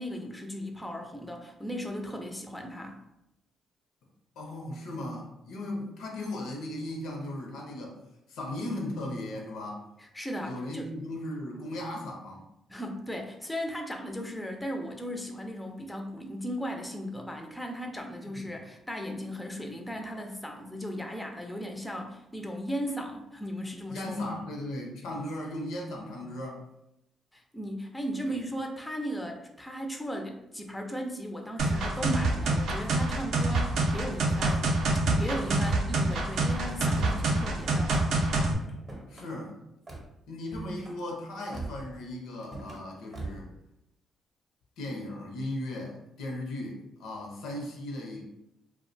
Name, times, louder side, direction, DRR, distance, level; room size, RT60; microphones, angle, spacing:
voice 1, 0.0-3.0 10.0-10.9 12.7-24.3 27.3-34.8 35.2-38.0, equal, 10° left, 3 dB, 0.3 m, -36 dB
voice 2, 4.4-8.0 8.3-9.8 10.4-12.4 18.3-18.5 23.9-26.6 28.2-28.4 39.1-39.6 40.3-43.5 44.8-48.2, left 1 dB, 85° left, 0 dB, 0.6 m, -37 dB
sound 1, 31.6-38.5, right 2 dB, 75° right, 0.4 m, -26 dB
Car / Slam, 36.9-37.4 37.9-38.3 38.6-39.3 39.9-40.1 40.5-41.0 41.5-41.9 42.4-42.8 43.1-43.5, right 2 dB, 35° right, 0.7 m, -41 dB
2.4 x 2.1 x 2.5 m, 0.84 s
cardioid pair, 90°, 0 cm